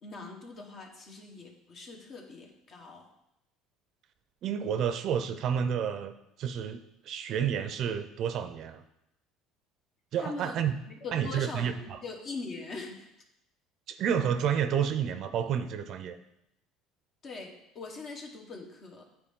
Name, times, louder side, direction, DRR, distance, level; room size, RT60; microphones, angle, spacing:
voice 1, 0.0-3.1 10.2-10.6 10.9-13.1 17.2-19.1, left 3 dB, 45° left, 1 dB, 1.4 m, -42 dB
voice 2, 4.4-6.8 7.0-8.8 10.1-10.7 11.1-12.0 13.9-16.2, right 8 dB, 55° right, 10 dB, 0.5 m, -30 dB
8.7 x 4.3 x 3.7 m, 0.84 s
supercardioid pair, 105°, 0 cm